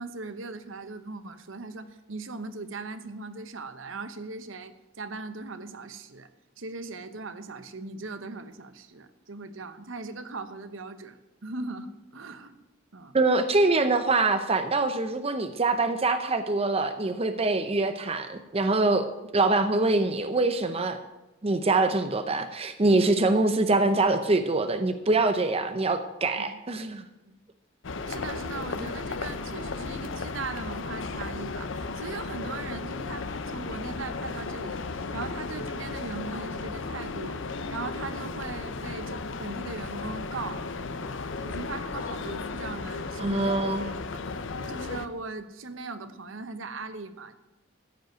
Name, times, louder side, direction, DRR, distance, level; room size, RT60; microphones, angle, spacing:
voice 1, 0.0-6.3 6.6-12.6 12.9-13.1 26.5-26.6 27.3-27.4 28.1-40.6 41.4-43.6 44.1-44.4 44.7-47.3, right 3 dB, 70° right, 11 dB, 0.9 m, -39 dB
voice 2, 13.1-19.1 19.3-21.0 21.4-27.0 43.2-43.8, right 2 dB, 30° right, 9 dB, 0.6 m, -24 dB
sound 1, 27.8-45.1, left 3 dB, 65° left, 0.7 m, -35 dB
14.5 x 5.4 x 9.0 m, 1.0 s
head